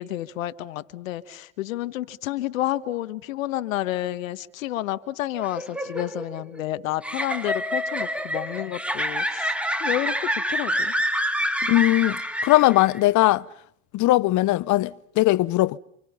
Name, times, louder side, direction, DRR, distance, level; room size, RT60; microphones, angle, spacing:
voice 1, 0.0-10.9, left 14 dB, 75° left, 1.3 m, -30 dB
sound 1, 5.4-13.0, equal, 5° right, 2.4 m, -27 dB
voice 2, 11.6-13.4 13.9-15.8, left 17 dB, 45° left, 0.9 m, -20 dB
28.5 x 27.5 x 5.6 m
hypercardioid pair, 85°, 40 cm